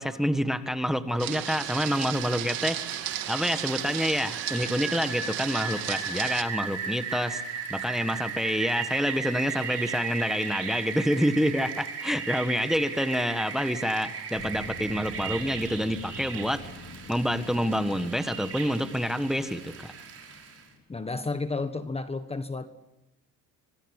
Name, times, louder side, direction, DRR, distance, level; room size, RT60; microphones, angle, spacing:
voice 1, 0.0-3.0 3.3-16.6 17.1-19.9, equal, ahead, 9 dB, 1.5 m, -27 dB
Rain, 1.2-20.6, right 6 dB, 40° right, 5.8 m, -37 dB
sound 1, 1.2-6.4, right 13 dB, 80° right, 2.2 m, -34 dB
sound 2, 14.3-20.8, left 2 dB, 50° left, 4.5 m, -46 dB
voice 2, 20.9-22.7, left 3 dB, 15° left, 10 dB, 1.4 m, -32 dB
26.0 x 24.5 x 8.2 m, 0.91 s
cardioid pair, 125°, 35 cm